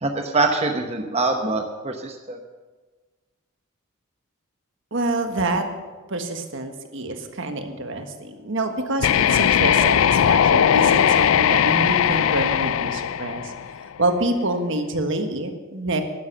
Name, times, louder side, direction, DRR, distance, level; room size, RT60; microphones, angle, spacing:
voice 1, 0.0-2.4, right 3 dB, 30° right, 3 dB, 0.9 m, -24 dB
voice 2, 4.9-5.6 6.1-13.5 14.0-16.0, right 2 dB, 60° right, 6 dB, 1.5 m, -26 dB
sound 1, 9.0-13.9, left 9 dB, 75° left, 0.4 m, -19 dB
12.0 x 10.5 x 7.4 m, 1.3 s
head